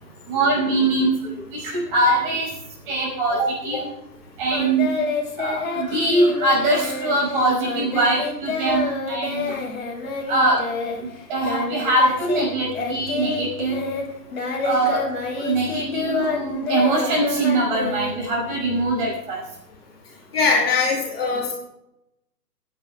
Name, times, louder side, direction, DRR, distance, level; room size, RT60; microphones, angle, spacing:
voice 1, 0.3-2.6 2.9-3.8 4.4-4.9 5.4-9.6 10.3-10.7 11.3-13.9 14.6-15.1 15.4-19.5, right 2 dB, 30° right, -3 dB, 5.2 m, -22 dB
Singing, 4.5-12.5 12.7-18.6, left 4 dB, 55° left, 3.0 m, -28 dB
voice 2, 20.3-21.5, left 4 dB, 35° left, 0 dB, 2.2 m, -21 dB
21.5 x 9.6 x 2.3 m, 0.87 s
figure-of-eight pair, 135°, 50 cm